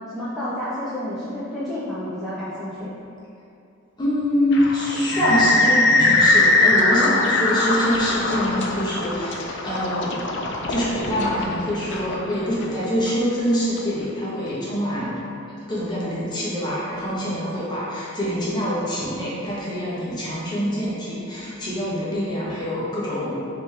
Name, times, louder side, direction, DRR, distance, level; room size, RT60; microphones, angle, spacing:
voice 1, 0.1-2.9, left 1 dB, ahead, -12 dB, 0.5 m, -30 dB
voice 2, 4.0-10.1 10.7-15.2 15.7-23.4, equal, 20° left, -8 dB, 1.1 m, -25 dB
sound 1, 4.5-13.8, left 2 dB, 60° left, 0.4 m, -21 dB
5.3 x 2.9 x 3.3 m, 2.6 s
head